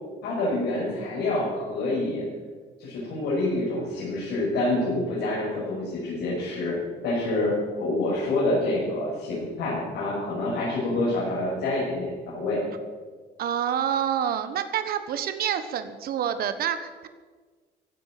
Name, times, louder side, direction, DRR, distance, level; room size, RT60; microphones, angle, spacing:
voice 1, 0.2-2.3 2.8-6.8 7.0-12.6, left 2 dB, 75° left, -6 dB, 6.1 m, -27 dB
voice 2, 13.4-17.1, right 9 dB, 65° right, 10 dB, 1.3 m, -27 dB
15.5 x 11.0 x 7.7 m, 1.4 s
cardioid pair, 110°, 17 cm